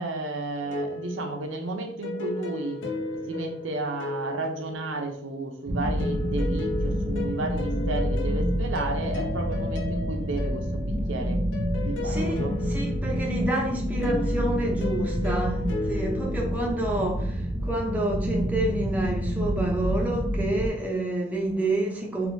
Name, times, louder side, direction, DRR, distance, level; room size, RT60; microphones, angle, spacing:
voice 1, 0.0-2.8 3.1-11.4 11.8-12.5, right 2 dB, 90° right, 3 dB, 0.6 m, -33 dB
sound 1, 0.6-5.3 6.0-17.2, left 2 dB, 90° left, 0.6 m, -35 dB
sound 2, 5.7-20.7, equal, 50° right, 0.7 m, -28 dB
voice 2, 12.0-12.4 12.7-22.3, right 1 dB, 10° right, -1 dB, 0.6 m, -28 dB
3.5 x 2.6 x 2.6 m, 0.63 s
head